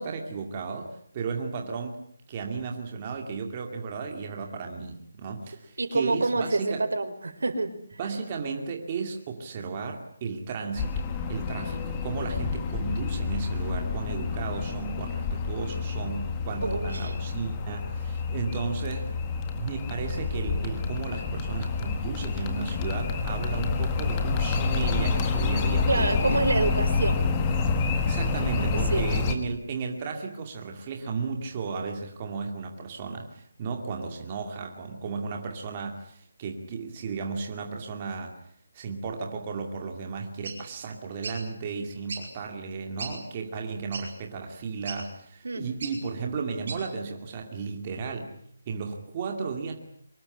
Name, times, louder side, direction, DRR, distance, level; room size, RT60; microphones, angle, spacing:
voice 1, 0.0-2.0 2.3-6.8 8.0-11.0 11.3-19.2 19.5-26.5 27.9-38.4 38.7-48.3 48.7-49.7, right 5 dB, 20° right, 3 dB, 2.3 m, -34 dB
voice 2, 5.8-7.7 16.6-17.1 25.9-27.3 28.6-28.7 28.9-29.4 45.4-45.7, right 3 dB, 80° right, 9 dB, 4.6 m, -27 dB
sound 1, 10.8-29.4, left 4 dB, 15° left, 1.7 m, -28 dB
sound 2, 40.4-40.6 41.2-41.4 42.1-42.2 42.7-42.8 43.0-43.1 43.9-44.1 44.8-45.0 45.8-45.9 46.7-46.8, right 4 dB, 35° right, 7.2 m, -36 dB
24.5 x 21.5 x 9.8 m, 0.64 s
hypercardioid pair, 180°, 0 cm